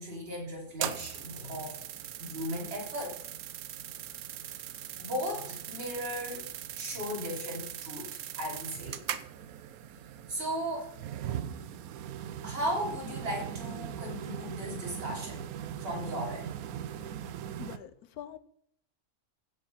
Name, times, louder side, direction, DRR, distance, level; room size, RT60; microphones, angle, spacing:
voice 1, 0.0-1.8 2.2-3.2 4.4-4.6 5.0-6.4 6.7-9.0 10.3-10.9 12.4-15.5 15.8-16.5, equal, 40° right, -2 dB, 3.2 m, -36 dB
sound 1, 0.7-17.8, right 10 dB, 75° right, 1.1 m, -40 dB
voice 2, 17.6-18.4, left 11 dB, 80° left, 14 dB, 1.3 m, -44 dB
15.5 x 5.4 x 5.4 m, 0.66 s
omnidirectional pair, 1.6 m